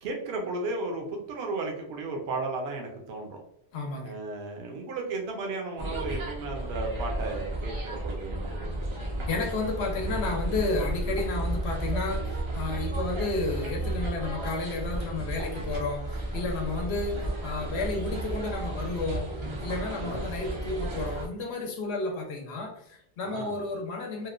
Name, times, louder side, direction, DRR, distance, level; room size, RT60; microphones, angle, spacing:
voice 1, 0.0-3.4 4.0-8.9 20.0-20.2 23.2-23.6, right 3 dB, 70° right, 1 dB, 0.8 m, -34 dB
voice 2, 3.7-4.1 9.3-19.3 19.6-24.3, left 3 dB, 70° left, 2 dB, 0.9 m, -32 dB
sound 1, 5.8-21.3, right 1 dB, 50° right, 0.3 m, -33 dB
2.9 x 2.1 x 2.4 m, 0.75 s
omnidirectional pair, 1.2 m